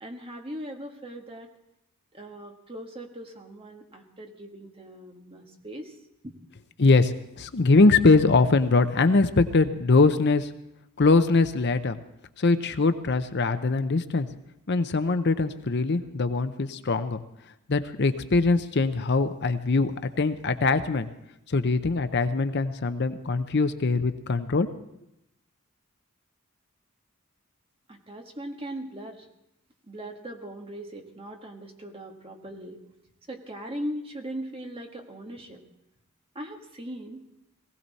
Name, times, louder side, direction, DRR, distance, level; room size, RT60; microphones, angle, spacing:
voice 1, 0.0-1.5 2.1-5.9 6.2-6.3 27.9-29.3 29.9-32.8 33.3-35.6 36.3-37.3, right 1 dB, 25° right, 3 dB, 1.6 m, -39 dB
voice 2, 6.8-10.5 11.0-12.0 12.4-14.3 14.7-17.2 17.7-21.1 21.5-24.7, left 3 dB, 50° left, 10 dB, 0.7 m, -22 dB
19.5 x 16.5 x 4.1 m, 0.85 s
head